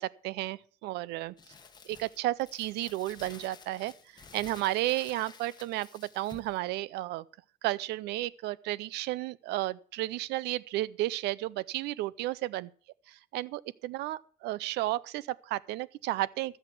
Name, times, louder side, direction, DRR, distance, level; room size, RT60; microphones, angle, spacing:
voice 1, 0.0-1.3 1.9-7.2 7.6-12.7 13.3-16.6, right 16 dB, 85° right, 0.5 m, -33 dB
Crumpling crinkling, 1.4-6.6, left 5 dB, 25° left, 1.4 m, -52 dB
13.5 x 8.0 x 5.9 m
cardioid pair, 110°, 17 cm